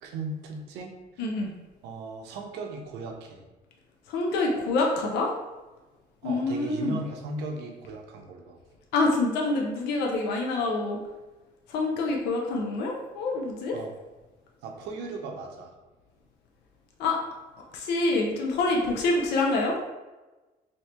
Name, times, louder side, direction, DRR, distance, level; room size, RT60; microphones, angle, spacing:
voice 1, 0.0-0.9 1.8-3.5 6.2-8.6 13.7-13.9 14.6-15.7, right 3 dB, 85° right, 2 dB, 0.6 m, -37 dB
voice 2, 1.2-1.5 4.1-5.3 6.2-7.0 8.9-11.0 11.7-13.7 17.0-17.2 17.7-19.8, left 2 dB, 80° left, 0 dB, 0.6 m, -26 dB
2.8 x 2.6 x 3.3 m, 1.1 s
cardioid pair, 110°, 17 cm